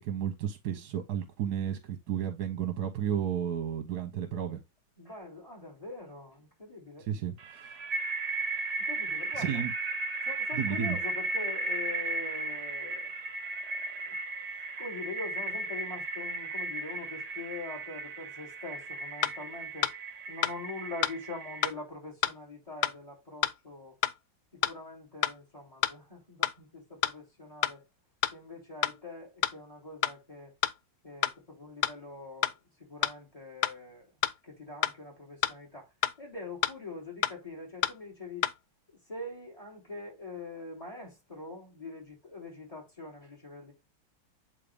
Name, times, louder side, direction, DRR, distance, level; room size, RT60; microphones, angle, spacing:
voice 1, 0.0-4.6 7.1-7.8 9.4-9.7 10.5-11.0, right 9 dB, 60° right, 1.3 m, -33 dB
voice 2, 5.0-7.1 8.8-9.6 10.2-13.1 13.7-14.2 14.8-19.9 20.2-24.0 24.5-27.8 28.3-30.5 31.0-34.1 34.4-35.9 36.2-38.5 39.1-43.7, left 3 dB, 15° left, 3.7 m, -43 dB
sound 1, 7.4-21.7, right 3 dB, 90° right, 0.3 m, -35 dB
sound 2, 19.2-19.3 19.8-20.0 20.4-20.6 21.0-21.1 21.6-21.8 22.2-22.4 22.8-22.9 23.4-23.6 24.0-24.2 24.6-24.7 25.2-25.4 25.8-25.9 26.4-26.5 27.0-27.1 27.6-27.7 28.2-28.4 28.8-29.0 29.4-29.5 30.0-30.2 30.6-30.8 31.2-31.4 31.8-32.0 32.4-32.6 33.0-33.2 33.6-33.8 34.2-34.4 34.8-35.0 35.4-35.6 36.0-36.1 36.6-36.8 37.2-37.4 37.8-38.0 38.4-38.5, left 11 dB, 75° left, 1.0 m, -28 dB
8.3 x 3.8 x 3.4 m
omnidirectional pair, 2.1 m